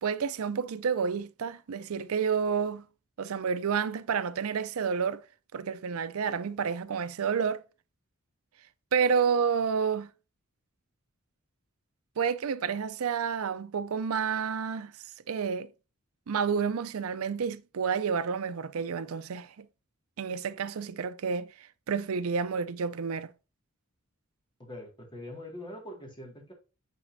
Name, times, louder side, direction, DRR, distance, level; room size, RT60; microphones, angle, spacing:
voice 1, 0.0-2.8 3.2-5.2 5.5-7.6 8.9-10.1 12.2-14.9 15.3-15.7 16.3-19.5 20.2-21.5 21.9-23.3, right 6 dB, 85° right, 0.5 m, -29 dB
voice 2, 24.6-26.5, left 1 dB, 20° left, 1.9 m, -43 dB
9.1 x 4.2 x 2.6 m
head